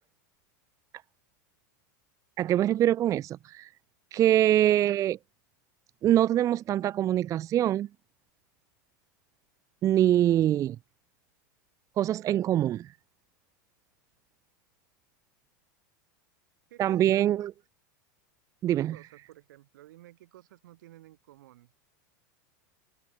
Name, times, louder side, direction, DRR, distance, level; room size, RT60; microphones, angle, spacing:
voice 1, 2.4-3.7 4.1-5.2 6.0-7.9 9.8-10.8 12.0-12.9 16.8-17.5 18.6-18.9, right 12 dB, 30° right, 0.4 m, -24 dB
voice 2, 16.7-17.3 18.8-21.7, right 15 dB, 75° right, 5.7 m, -53 dB
open air
hypercardioid pair, 110°, 10 cm